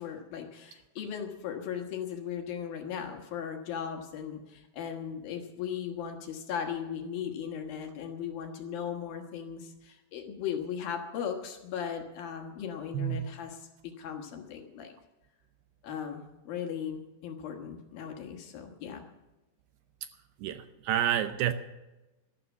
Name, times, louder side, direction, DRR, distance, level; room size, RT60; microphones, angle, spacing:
voice 1, 0.0-13.6 13.8-14.9 15.8-19.0, left 8 dB, 65° left, 3 dB, 2.8 m, -37 dB
voice 2, 12.9-13.3 20.4-21.5, right 10 dB, 80° right, 10 dB, 2.5 m, -29 dB
12.5 x 12.5 x 7.1 m, 1.0 s
omnidirectional pair, 5.0 m